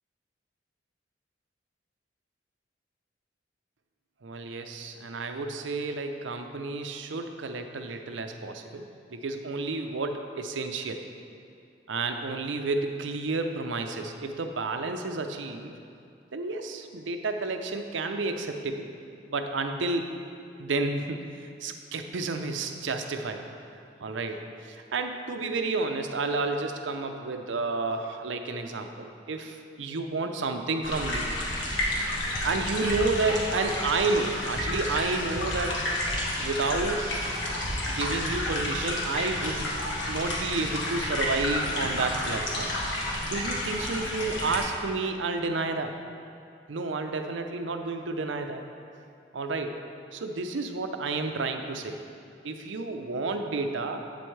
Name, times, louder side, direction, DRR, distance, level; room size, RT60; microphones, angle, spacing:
voice 1, 4.2-11.0 11.9-15.7 16.3-18.9 19.3-20.1 20.6-23.5 24.0-24.4 24.9-31.3 32.4-35.8 36.4-37.1 37.9-39.8 40.1-42.7 43.2-45.9 46.7-48.6 49.3-49.7 50.1-52.0 52.4-54.0, right 3 dB, 80° right, 6 dB, 0.6 m, -31 dB
sound 1, 30.8-44.6, left 1 dB, 80° left, 1.4 m, -30 dB
8.4 x 7.8 x 3.2 m, 2.5 s
head